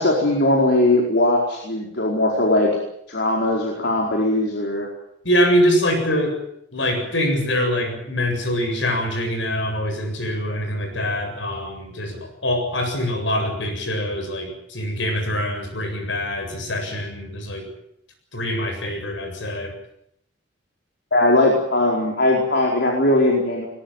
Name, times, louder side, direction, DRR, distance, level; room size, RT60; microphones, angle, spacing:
voice 1, 0.0-2.8 3.1-4.9 21.1-23.7, left 1 dB, 65° left, -1 dB, 4.7 m, -19 dB
voice 2, 5.2-6.4 6.7-17.7 18.3-19.7, equal, 80° left, 5 dB, 7.7 m, -24 dB
21.0 x 20.0 x 9.2 m, 0.75 s
head